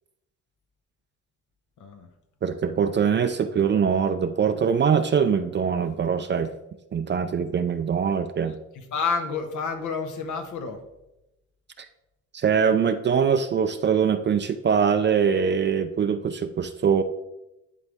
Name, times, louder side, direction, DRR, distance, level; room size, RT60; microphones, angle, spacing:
voice 1, 2.4-6.5 6.9-8.6 11.8-11.9 12.3-17.0, right 7 dB, 35° right, 8 dB, 0.5 m, -23 dB
voice 2, 8.7-10.8, left 5 dB, 80° left, 6 dB, 1.1 m, -29 dB
11.0 x 4.0 x 3.5 m, 0.92 s
cardioid pair, 90°, 30 cm